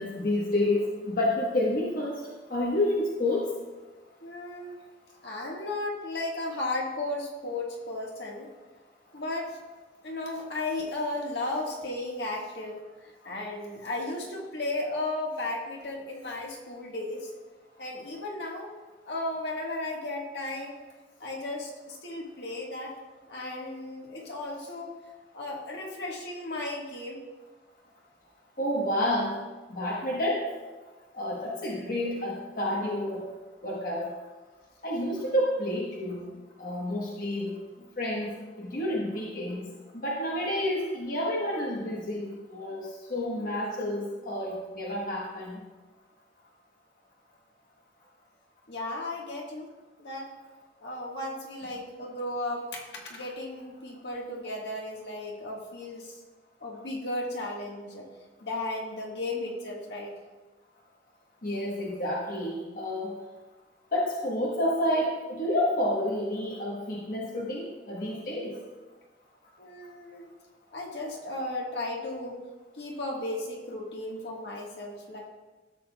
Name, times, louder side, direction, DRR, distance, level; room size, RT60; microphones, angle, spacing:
voice 1, 0.0-2.2 2.5-3.5 28.6-29.4 29.7-30.5 31.1-33.2 33.6-34.1 34.8-37.5 38.0-38.3 38.6-39.7 39.9-45.6 61.4-63.1 63.9-68.6, left 1 dB, 55° left, -4 dB, 1.2 m, -29 dB
voice 2, 4.2-4.8 5.2-8.5 9.1-9.6 10.0-17.3 17.8-18.7 19.0-20.8 21.2-22.9 23.3-25.0 25.3-27.2 48.7-49.7 50.0-50.3 50.8-56.2 56.6-58.1 58.4-60.1 69.6-70.3 70.7-72.4 72.7-75.2, left 2 dB, 70° left, -1 dB, 1.5 m, -35 dB
13.0 x 7.7 x 2.3 m, 1.2 s
head